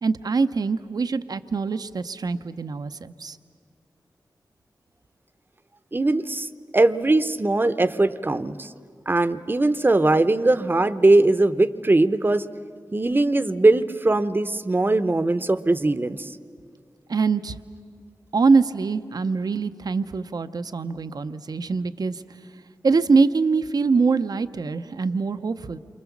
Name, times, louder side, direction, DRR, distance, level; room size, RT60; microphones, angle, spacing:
voice 1, 0.0-3.4 17.1-17.6 18.3-22.2 22.8-25.8, right 4 dB, 65° right, 10 dB, 0.7 m, -23 dB
voice 2, 5.9-8.7 9.1-12.4 12.9-16.4, right 2 dB, 30° right, 13 dB, 0.8 m, -20 dB
29.0 x 24.5 x 7.2 m, 2.1 s
wide cardioid pair, 80°, 7 cm